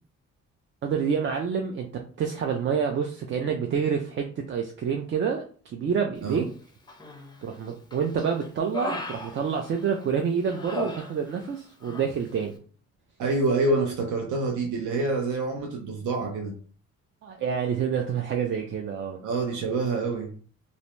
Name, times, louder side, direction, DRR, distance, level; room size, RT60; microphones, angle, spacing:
voice 1, 0.8-6.5 7.4-12.6 17.2-19.2, right 6 dB, 40° right, 0.4 m, -28 dB
Human voice, 6.9-7.5 7.9-10.0 10.5-11.6 11.8-12.1, left 3 dB, 15° left, 0.5 m, -37 dB
voice 2, 13.2-16.5 19.2-20.3, right 3 dB, 75° right, 0.7 m, -27 dB
2.5 x 2.0 x 3.0 m
cardioid pair, 90°, 30 cm